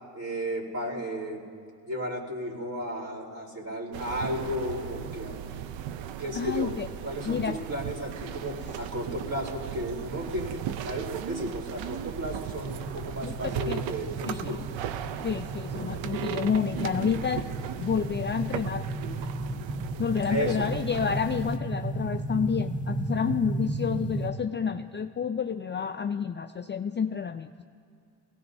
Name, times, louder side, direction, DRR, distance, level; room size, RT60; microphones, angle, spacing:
voice 1, 0.1-1.4 1.8-5.4 6.2-14.6 20.3-20.7, equal, 40° right, 0 dB, 4.3 m, -34 dB
sound 1, 3.9-21.6, right 10 dB, 80° right, 0.7 m, -37 dB
voice 2, 6.3-6.9 7.3-7.6 13.2-13.8 14.3-14.6 15.2-17.5 17.8-18.9 20.0-27.6, left 7 dB, 25° left, 8 dB, 0.4 m, -29 dB
sound 2, 12.6-24.3, right 1 dB, 20° right, 1.0 m, -34 dB
22.0 x 17.5 x 2.7 m, 2.3 s
supercardioid pair, 60°, 45 cm